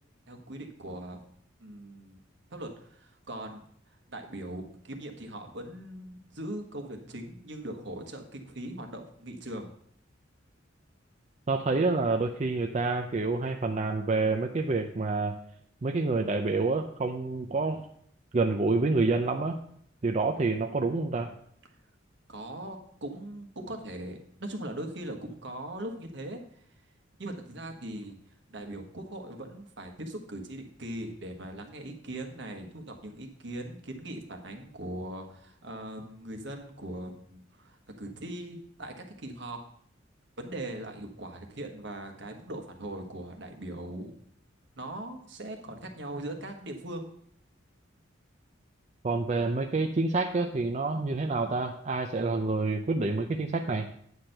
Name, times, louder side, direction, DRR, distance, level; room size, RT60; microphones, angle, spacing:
voice 1, 0.3-1.2 1.6-2.2 2.5-3.6 4.1-9.7 22.3-26.4 27.2-28.2 28.5-39.6 40.4-44.1 44.8-47.1, right 1 dB, 65° right, 4 dB, 1.3 m, -40 dB
voice 2, 11.5-15.3 15.8-17.8 18.3-19.6 20.0-21.3 49.0-53.9, right 3 dB, 35° right, 4 dB, 0.5 m, -28 dB
9.4 x 4.5 x 6.5 m, 0.66 s
head